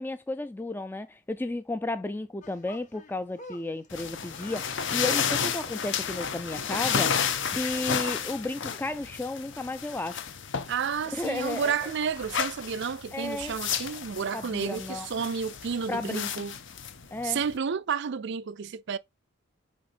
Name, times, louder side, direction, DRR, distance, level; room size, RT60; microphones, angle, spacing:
voice 1, 0.0-10.2 11.1-11.9 13.1-13.6 14.3-15.1 15.9-16.4 17.1-17.4, left 2 dB, 10° left, 0.3 m, -33 dB
sound 1, 2.4-9.0, left 1 dB, 35° left, 1.1 m, -48 dB
sound 2, 3.9-17.6, left 7 dB, 60° left, 0.8 m, -32 dB
voice 2, 10.7-16.6 17.2-19.0, right 6 dB, 55° right, 0.4 m, -31 dB
6.5 x 4.8 x 3.3 m
head